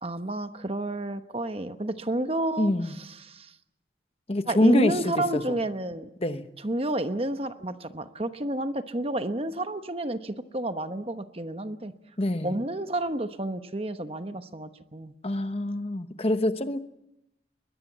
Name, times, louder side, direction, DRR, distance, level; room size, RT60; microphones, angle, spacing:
voice 1, 0.0-2.7 3.0-3.5 4.5-6.1 6.6-11.9 12.4-15.1, right 1 dB, 30° right, 9 dB, 1.0 m, -30 dB
voice 2, 2.6-2.9 4.3-5.6 6.2-6.5 12.2-12.5 15.2-16.8, left 1 dB, 30° left, 10 dB, 1.0 m, -25 dB
22.0 x 21.0 x 7.4 m, 0.83 s
head